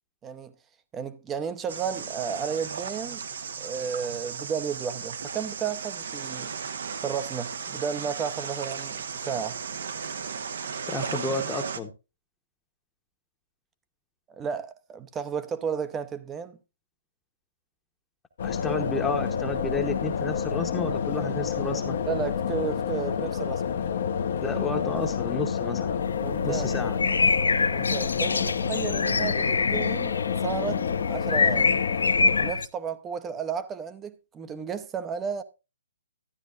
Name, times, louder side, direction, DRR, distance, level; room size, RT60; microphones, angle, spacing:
voice 1, 0.2-0.5 0.9-3.2 3.6-6.5 7.0-9.6 14.3-16.6 22.1-23.8 26.2-26.7 27.7-30.1 30.4-31.8 32.3-35.4, right 7 dB, 15° right, 0.7 m, -33 dB
sound 1, 1.7-11.8, right 6 dB, 65° right, 0.9 m, -35 dB
voice 2, 10.9-11.9 18.4-22.0 24.4-26.0 26.4-27.0, left 2 dB, 10° left, 1.0 m, -31 dB
sound 2, 18.4-32.5, left 7 dB, 60° left, 0.9 m, -29 dB
sound 3, 26.0-32.7, left 4 dB, 85° left, 0.4 m, -26 dB
12.5 x 9.8 x 2.5 m
hypercardioid pair, 140°, 0 cm